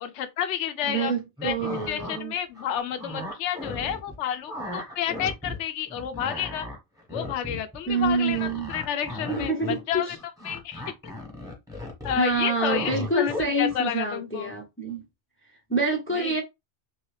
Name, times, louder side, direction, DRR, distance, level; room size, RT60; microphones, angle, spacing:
voice 1, 0.0-1.1 1.4-6.7 7.1-10.2 10.4-11.1 12.0-14.5 16.1-16.3, left 9 dB, 75° left, 0.9 m, -30 dB
voice 2, 0.9-2.3 7.9-8.7 9.3-10.1 12.2-15.0 15.7-16.4, right 3 dB, 15° left, 0.6 m, -27 dB
sound 1, 1.4-2.2 2.6-4.2 4.5-5.6 5.9-13.8, left 1 dB, 5° right, 1.1 m, -36 dB
3.1 x 2.7 x 3.2 m
omnidirectional pair, 1.2 m